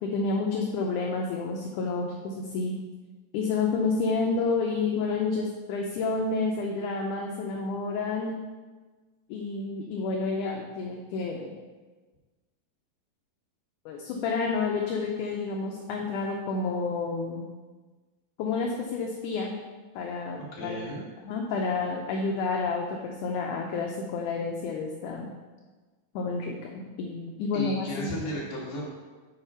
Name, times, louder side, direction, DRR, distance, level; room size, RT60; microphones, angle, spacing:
voice 1, 0.0-2.8 3.3-8.4 9.3-11.7 13.9-17.5 18.4-19.5 20.0-20.9 21.2-25.3 26.2-28.1, left 4 dB, 75° left, 0 dB, 2.0 m, -30 dB
voice 2, 20.3-21.0 27.5-28.9, equal, 45° left, -6 dB, 2.7 m, -34 dB
8.1 x 4.9 x 5.6 m, 1.3 s
omnidirectional pair, 4.1 m